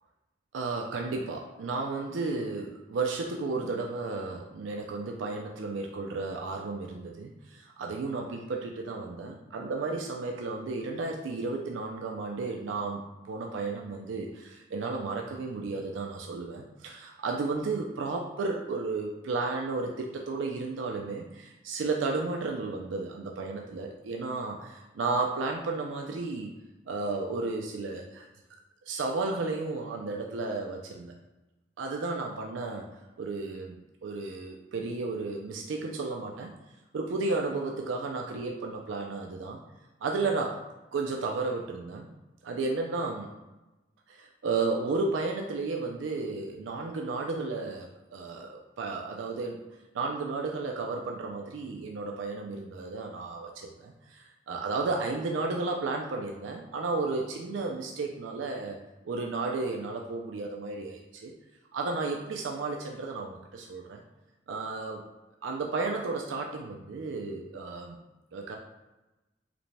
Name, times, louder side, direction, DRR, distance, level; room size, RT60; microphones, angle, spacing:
voice 1, 0.5-26.5 26.9-28.3 28.9-31.1 31.8-32.9 33.2-36.5 36.9-39.6 40.0-40.6 40.9-42.1 42.4-43.3 44.1-49.6 49.9-58.8 59.0-61.3 61.7-64.0 64.5-65.0 65.4-68.0 68.3-68.6, right 3 dB, 85° right, 2 dB, 0.4 m, -33 dB
4.9 x 2.2 x 3.2 m, 1.1 s
head